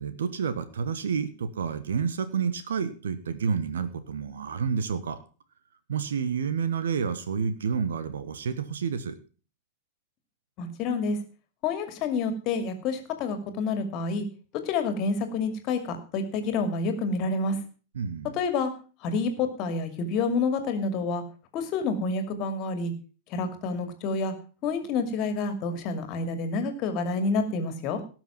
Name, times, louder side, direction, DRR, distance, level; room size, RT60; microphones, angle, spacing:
voice 1, 0.0-5.2 5.9-9.1 17.9-18.3, right 6 dB, 65° right, 12 dB, 1.3 m, -29 dB
voice 2, 10.6-11.2 11.6-14.3 14.6-17.6 18.3-18.7 19.0-21.2 21.5-22.9 23.3-24.3 24.6-28.0, left 4 dB, 40° left, 7 dB, 2.4 m, -28 dB
18.0 x 6.3 x 5.8 m, 0.36 s
figure-of-eight pair, 90°, 0 cm